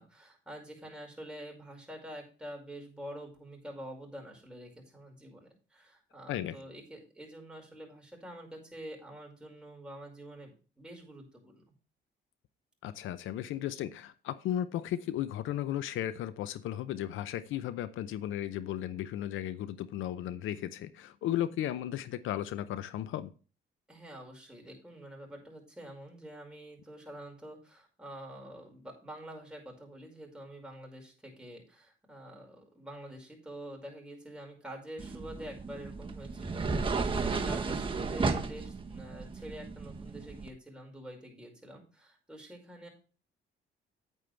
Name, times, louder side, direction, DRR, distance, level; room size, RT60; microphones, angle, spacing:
voice 1, 0.0-11.6 23.9-42.9, right 1 dB, 5° right, -1 dB, 5.1 m, -47 dB
voice 2, 12.8-23.3, left 12 dB, 80° left, 14 dB, 0.7 m, -35 dB
sound 1, 35.0-40.5, right 4 dB, 25° right, 1.2 m, -34 dB
9.3 x 9.0 x 3.3 m, 0.35 s
cardioid pair, 90°, 20 cm